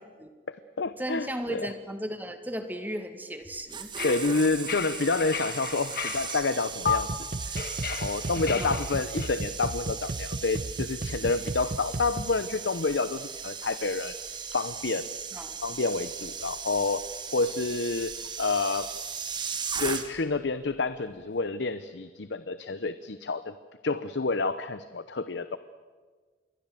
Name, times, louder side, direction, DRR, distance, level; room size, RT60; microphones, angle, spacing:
voice 1, 0.5-1.7 4.0-7.1 7.5-7.6 7.9-14.1 14.5-15.1 15.6-17.0 17.3-18.9 19.8-23.5 23.8-25.6, left 3 dB, 75° left, 12 dB, 0.8 m, -29 dB
voice 2, 1.0-3.9 8.5-8.8 15.3-15.6, equal, 10° right, 7 dB, 1.9 m, -35 dB
sound 1, 3.4-20.4 20.7-20.9, right 6 dB, 25° right, 1.7 m, -38 dB
sound 2, 4.0-6.4 6.9-7.0 7.6-9.3, left 6 dB, 55° left, 1.7 m, -34 dB
sound 3, 6.9-12.4, right 2 dB, 50° right, 0.8 m, -35 dB
28.0 x 22.5 x 7.7 m, 1.5 s
head